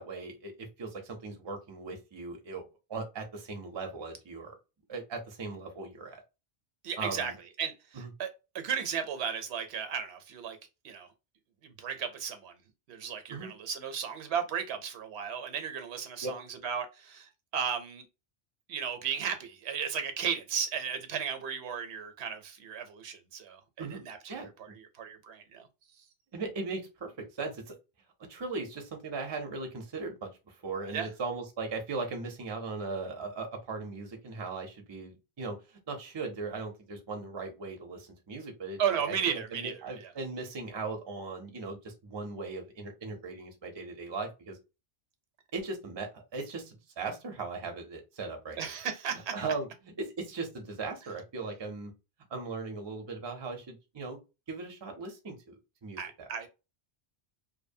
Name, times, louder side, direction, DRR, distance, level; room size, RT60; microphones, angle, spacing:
voice 1, 0.0-2.6 2.9-4.6 4.9-6.2 7.0-7.4 7.9-8.1 13.3-13.5 16.2-16.4 23.8-24.0 24.3-24.5 26.3-27.8 28.2-44.6 45.5-48.6 49.3-51.9 52.3-54.2 54.5-56.0, right 3 dB, 30° right, 0.5 m, -38 dB
voice 2, 6.8-7.3 7.6-10.6 10.8-11.1 11.6-12.5 12.9-18.0 18.7-24.3 24.6-25.7 30.9-31.1 38.8-40.1 48.6-49.3 56.0-56.5, right 7 dB, 75° right, 0.8 m, -35 dB
2.6 x 2.1 x 2.6 m
omnidirectional pair, 1.1 m